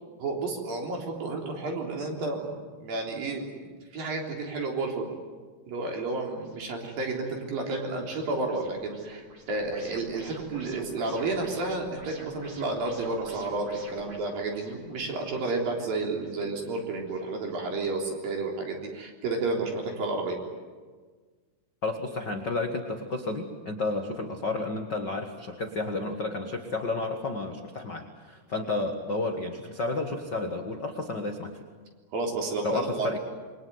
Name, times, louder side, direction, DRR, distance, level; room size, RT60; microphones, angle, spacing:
voice 1, 0.2-5.1 5.7-20.4 32.1-33.1, right 3 dB, 55° right, 1 dB, 5.2 m, -31 dB
sound 1, 6.1-17.6, right 2 dB, 35° right, 4.4 m, -49 dB
voice 2, 21.8-31.6 32.6-33.2, left 3 dB, 60° left, 4 dB, 1.1 m, -31 dB
28.0 x 22.5 x 9.5 m, 1.5 s
omnidirectional pair, 4.9 m